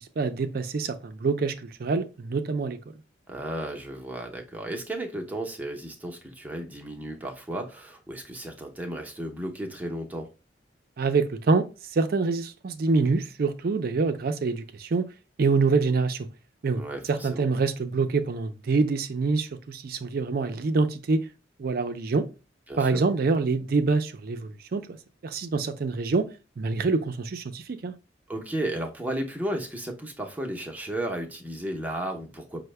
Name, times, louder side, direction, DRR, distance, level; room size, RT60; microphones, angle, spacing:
voice 1, 0.2-1.5 1.8-2.8 11.0-11.6 11.9-15.0 15.4-16.3 16.6-16.8 17.1-21.2 21.6-22.3 22.8-25.0 25.2-26.3 26.6-27.9, right 4 dB, 50° right, 0.4 m, -25 dB
voice 2, 3.3-10.3 16.8-17.5 22.7-23.0 28.3-32.6, right 1 dB, 10° right, 0.6 m, -34 dB
5.5 x 2.1 x 3.2 m
head